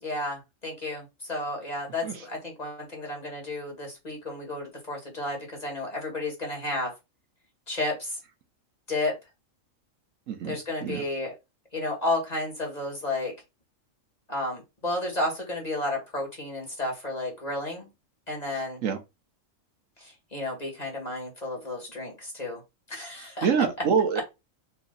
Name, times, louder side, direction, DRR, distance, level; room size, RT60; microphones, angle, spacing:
voice 1, 0.0-6.9 7.7-8.2 8.9-9.2 10.4-11.3 11.7-13.3 14.3-17.9 18.3-18.8 20.0-22.6 22.9-23.5, left 2 dB, 30° left, 2.1 m, -32 dB
voice 2, 10.3-11.0 18.8-19.0 23.4-24.2, right 6 dB, 75° right, 1.3 m, -25 dB
4.5 x 2.8 x 3.9 m
omnidirectional pair, 1.3 m